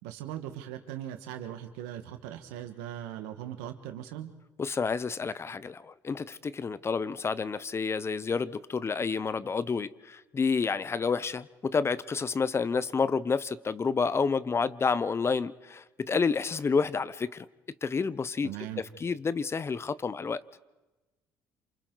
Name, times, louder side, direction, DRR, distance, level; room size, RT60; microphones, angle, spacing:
voice 1, 0.0-4.3 18.4-18.8, right 11 dB, 85° right, 7 dB, 1.6 m, -39 dB
voice 2, 4.6-17.4 17.8-18.5 19.0-20.4, left 5 dB, 35° left, 17 dB, 0.8 m, -29 dB
28.0 x 27.5 x 4.0 m, 1.1 s
supercardioid pair, 65°, 8 cm